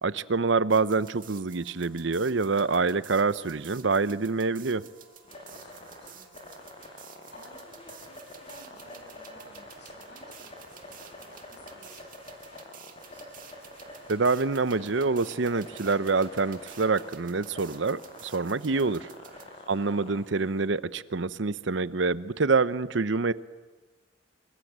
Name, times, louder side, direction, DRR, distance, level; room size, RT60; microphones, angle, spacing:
voice 1, 0.0-4.8 14.1-19.1 19.7-23.3, right 4 dB, 70° right, 0.8 m, -26 dB
sound 1, 0.7-19.4, right 10 dB, 45° right, 2.1 m, -52 dB
sound 2, 1.5-20.7, left 1 dB, 30° left, 6.7 m, -48 dB
voice 2, 5.4-13.3 19.4-20.2, left 1 dB, 60° left, 7.6 m, -55 dB
26.5 x 24.0 x 8.1 m
head